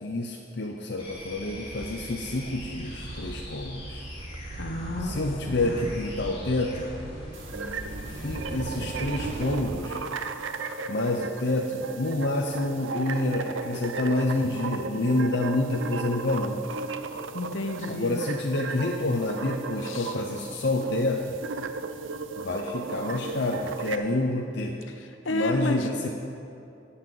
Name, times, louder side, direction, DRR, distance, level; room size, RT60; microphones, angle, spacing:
voice 1, 0.0-4.0 5.0-6.9 8.1-10.0 10.9-16.6 17.9-21.4 22.4-24.8 25.3-26.1, left 2 dB, 60° left, 0 dB, 0.8 m, -28 dB
sound 1, 1.0-9.6, left 1 dB, 30° left, 2.6 m, -41 dB
sound 2, 1.0-1.2 1.5-9.9, right 2 dB, 40° right, 0.4 m, -40 dB
voice 2, 4.6-5.2 5.5-5.8 17.3-18.2 19.8-20.2 25.0-25.9, left 1 dB, 85° left, 5 dB, 1.1 m, -31 dB
sound 3, 7.3-24.0, right 4 dB, 90° right, 0.6 m, -36 dB
16.0 x 5.7 x 7.5 m, 2.6 s
head